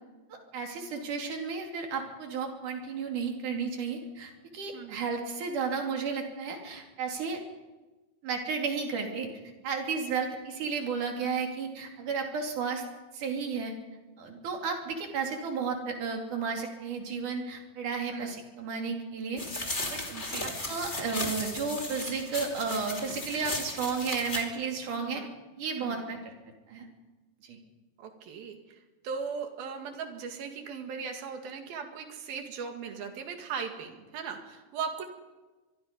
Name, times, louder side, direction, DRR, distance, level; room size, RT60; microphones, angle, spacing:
voice 1, 0.3-7.4 8.2-9.3 9.6-12.8 13.1-13.7 14.2-20.0 20.7-25.2 25.6-26.3 26.7-26.9 27.4-27.6, right 5 dB, 60° right, 2 dB, 4.1 m, -33 dB
voice 2, 4.7-5.1 18.1-18.4 20.1-20.6 25.0-25.3 25.8-26.1 28.0-28.8 29.0-35.1, right 6 dB, 80° right, 5 dB, 3.9 m, -38 dB
sound 1, 19.4-24.4, left 2 dB, 15° left, 2.5 m, -36 dB
24.5 x 23.0 x 5.3 m, 1.2 s
omnidirectional pair, 4.2 m